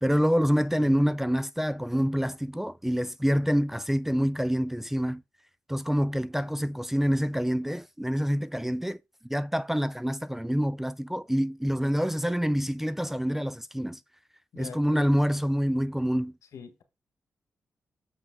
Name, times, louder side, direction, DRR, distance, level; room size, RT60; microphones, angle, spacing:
voice 1, 0.0-5.2 5.7-14.0 14.6-16.4, equal, 5° right, 0.5 m, -26 dB
voice 2, 14.5-15.1 16.5-16.8, left 6 dB, 75° left, 1.4 m, -43 dB
6.6 x 5.9 x 3.7 m
supercardioid pair, 40°, 5 cm